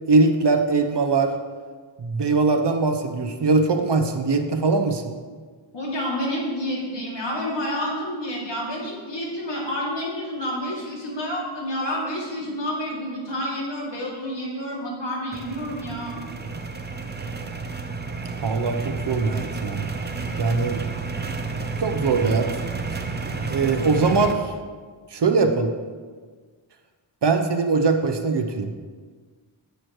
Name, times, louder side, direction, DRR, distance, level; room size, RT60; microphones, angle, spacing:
voice 1, 0.1-1.3 2.0-5.1 18.4-19.8 20.4-20.8 21.8-22.5 23.5-24.5 25.1-25.7 27.2-28.7, right 4 dB, 60° right, 6 dB, 0.8 m, -21 dB
voice 2, 5.7-16.2, equal, 60° left, -4 dB, 2.7 m, -29 dB
sound 1, 15.3-24.3, right 4 dB, 20° right, 0.6 m, -31 dB
11.0 x 8.0 x 3.1 m, 1.5 s
wide cardioid pair, 115°, 48 cm